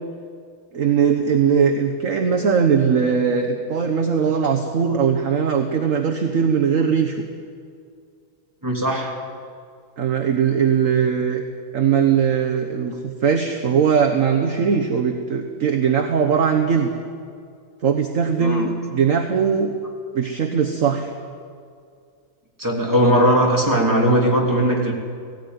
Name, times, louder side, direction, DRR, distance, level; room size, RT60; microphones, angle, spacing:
voice 1, 0.7-7.2 10.0-11.4 11.7-16.9 17.8-19.7 20.1-21.1, right 6 dB, 45° right, 3 dB, 1.3 m, -20 dB
voice 2, 8.6-9.2 18.4-18.7 22.6-24.9, equal, 10° right, -2 dB, 3.0 m, -18 dB
17.5 x 17.5 x 9.5 m, 2.3 s
omnidirectional pair, 2.3 m